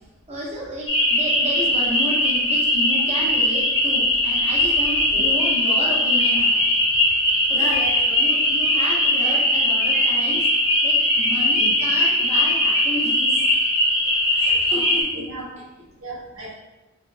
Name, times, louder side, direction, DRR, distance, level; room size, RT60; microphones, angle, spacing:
voice 1, 0.3-6.7 7.5-7.7 8.2-10.5 10.8-13.4 14.4-15.3, equal, 30° right, -5 dB, 0.7 m, -32 dB
sound 1, 0.9-15.0, left 1 dB, 20° left, 0.7 m, -20 dB
voice 2, 7.5-8.1 11.6-11.7 14.7-14.8 15.1-15.5 16.0-16.5, right 1 dB, 65° right, -4 dB, 0.6 m, -33 dB
3.6 x 2.1 x 2.6 m, 1.0 s
head